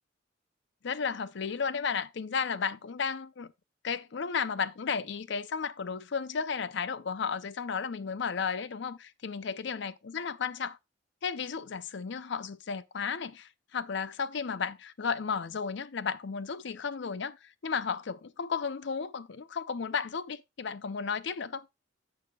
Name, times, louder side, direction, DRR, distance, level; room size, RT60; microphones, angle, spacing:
voice 1, 0.8-3.5 3.8-10.8 11.2-21.7, left 6 dB, 65° left, 0.6 m, -34 dB
14.5 x 4.9 x 2.3 m
head